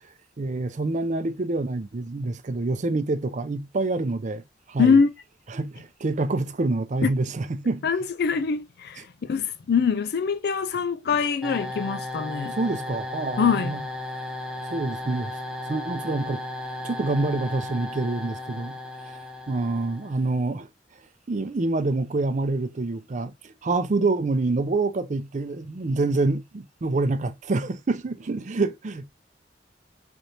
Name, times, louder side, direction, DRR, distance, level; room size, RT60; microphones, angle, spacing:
voice 1, 0.4-5.0 5.5-7.8 12.4-13.8 14.7-15.3 15.7-16.4 16.8-18.8 19.1-19.2 19.5-20.7 21.3-29.1, right 3 dB, 45° right, 0.5 m, -27 dB
voice 2, 4.8-5.1 7.0-7.1 7.8-12.6 13.4-13.8, left 5 dB, 65° left, 0.4 m, -23 dB
sound 1, 11.4-20.3, left 1 dB, 5° right, 0.7 m, -35 dB
4.1 x 3.3 x 2.5 m
head